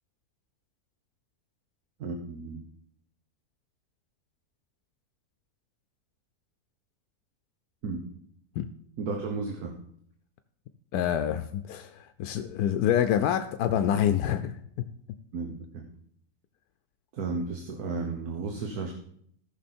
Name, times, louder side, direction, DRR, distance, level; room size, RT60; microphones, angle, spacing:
voice 1, 2.0-2.6 7.8-8.0 9.0-9.8 15.3-15.8 17.1-18.9, right 4 dB, 80° right, 2 dB, 1.6 m, -33 dB
voice 2, 10.9-14.5, left 10 dB, 85° left, 9 dB, 1.1 m, -26 dB
14.5 x 6.1 x 4.3 m, 0.67 s
omnidirectional pair, 1.6 m